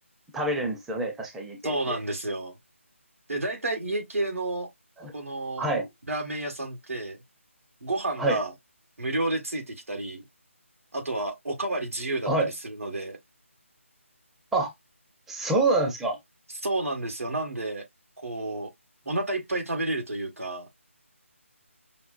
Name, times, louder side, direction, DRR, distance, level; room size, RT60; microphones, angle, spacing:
voice 1, 0.3-2.0 5.0-5.1 5.6-5.9 8.2-8.4 12.3-12.5 14.5-14.7 15.3-16.2, right 2 dB, 5° right, 0.5 m, -26 dB
voice 2, 1.6-2.5 3.3-4.7 5.1-5.7 6.1-7.2 7.8-8.5 9.0-10.2 10.9-13.2 16.6-17.8 18.2-18.7 19.0-20.7, right 2 dB, 85° right, 1.5 m, -30 dB
5.8 x 2.0 x 2.5 m
figure-of-eight pair, 155°, 7 cm